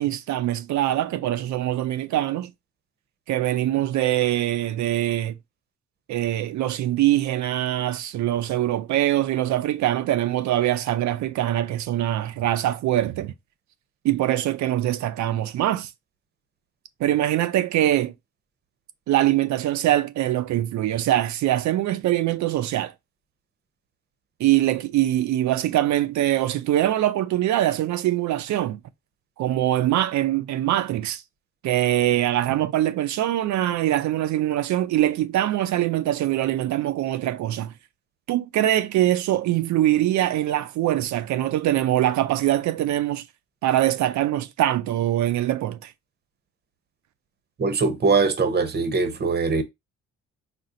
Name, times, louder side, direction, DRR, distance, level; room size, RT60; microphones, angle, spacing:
voice 1, 0.0-2.5 3.3-5.3 6.1-13.3 14.0-15.9 17.0-18.1 19.1-22.9 24.4-28.8 29.4-31.2 31.6-37.7 38.3-43.2 43.6-45.9, right 13 dB, 70° right, 0.5 m, -23 dB
voice 2, 47.6-49.6, right 4 dB, 35° right, 0.8 m, -22 dB
4.3 x 2.1 x 3.6 m
cardioid pair, 90°, 30 cm